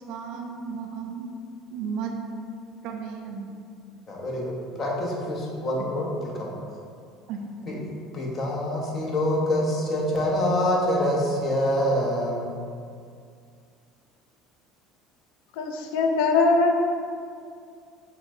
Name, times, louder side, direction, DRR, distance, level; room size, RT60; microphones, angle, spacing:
voice 1, 0.1-1.3 1.7-2.1 2.8-3.5 7.3-7.4, right 6 dB, 65° right, 2 dB, 0.4 m, -34 dB
voice 2, 4.1-6.5 7.6-7.8 8.1-12.6, left 1 dB, 40° left, -3 dB, 0.8 m, -26 dB
voice 3, 15.6-16.8, left 3 dB, 75° left, 3 dB, 0.3 m, -21 dB
5.7 x 2.1 x 2.6 m, 2.3 s
hypercardioid pair, 80°, 0 cm